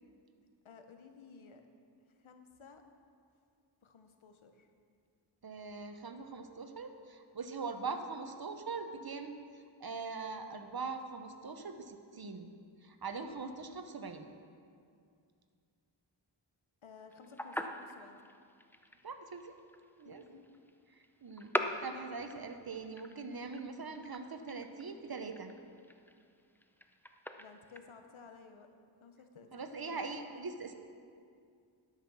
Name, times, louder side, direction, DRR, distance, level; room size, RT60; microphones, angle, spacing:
voice 1, 0.6-1.6 2.2-2.8 3.8-4.7 16.8-18.3 20.0-20.5 27.4-30.2, left 5 dB, 85° left, 6 dB, 0.9 m, -56 dB
voice 2, 5.4-9.4 9.8-12.5 12.8-14.3 19.0-19.5 20.0-20.2 21.2-25.5 29.5-30.7, right 4 dB, 50° right, 7 dB, 0.9 m, -42 dB
sound 1, 17.1-27.8, left 1 dB, 5° left, 0.6 m, -43 dB
12.5 x 5.8 x 6.1 m, 2.3 s
cardioid pair, 40°, 47 cm